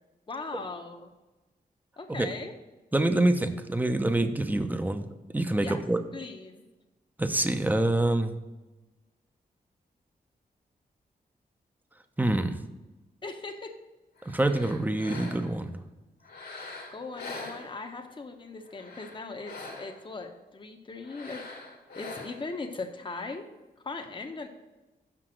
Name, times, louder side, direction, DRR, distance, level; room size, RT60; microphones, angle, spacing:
voice 1, 0.3-1.1 2.0-2.5 5.6-5.8 6.1-6.6 13.2-13.8 16.9-21.4 22.0-23.5 23.8-24.5, left 3 dB, 30° left, 4 dB, 0.8 m, -39 dB
voice 2, 2.9-5.1 5.3-6.0 7.2-8.3 12.2-12.6 14.2-15.8, right 1 dB, 10° right, 8 dB, 0.7 m, -26 dB
sound 1, 14.2-15.7 16.2-18.1 18.6-20.1 21.0-22.6, left 3 dB, 75° left, 1.6 m, -43 dB
6.0 x 5.6 x 6.2 m, 1.1 s
cardioid pair, 70°, 16 cm